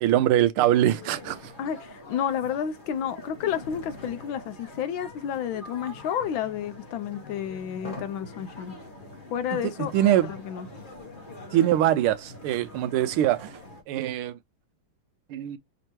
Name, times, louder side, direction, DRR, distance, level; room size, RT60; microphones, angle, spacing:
voice 1, 0.0-1.5 9.5-10.3 11.5-13.6 13.9-14.4 15.3-15.6, right 12 dB, 80° right, 1.5 m, -23 dB
sound 1, 0.7-13.8, left 2 dB, 40° left, 0.7 m, -44 dB
voice 2, 1.6-8.8 9.3-10.7, left 9 dB, 75° left, 1.2 m, -31 dB
5.3 x 2.9 x 2.9 m
omnidirectional pair, 2.4 m